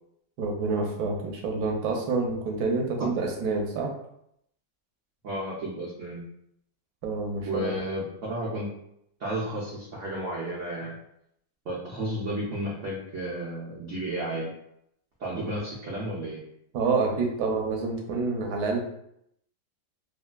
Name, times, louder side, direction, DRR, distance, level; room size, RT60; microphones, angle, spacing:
voice 1, 0.4-3.9 7.0-7.7 16.7-18.8, right 4 dB, 70° right, 1 dB, 1.0 m, -27 dB
voice 2, 5.2-6.2 7.5-8.7 9.2-11.0 11.6-14.5 15.2-16.4, right 1 dB, 90° right, -5 dB, 0.6 m, -32 dB
3.4 x 2.4 x 2.2 m, 0.76 s
omnidirectional pair, 2.1 m